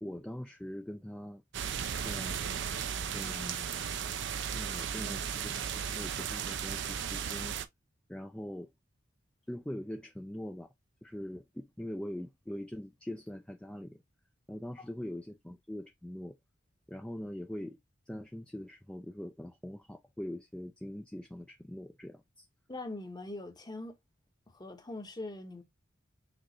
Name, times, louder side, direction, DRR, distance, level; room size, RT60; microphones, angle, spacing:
voice 1, 0.0-1.4 2.0-2.5 3.1-4.2 4.5-5.5 5.8-7.6 8.1-8.7 9.5-10.7 11.0-14.0 14.5-16.4 16.9-17.8 18.1-22.5, left 1 dB, 5° left, 0.4 m, -42 dB
sound 1, 1.5-7.6, right 8 dB, 65° right, 0.5 m, -35 dB
voice 2, 22.7-24.0 24.5-25.6, left 2 dB, 20° left, 0.9 m, -42 dB
6.0 x 2.5 x 3.0 m
head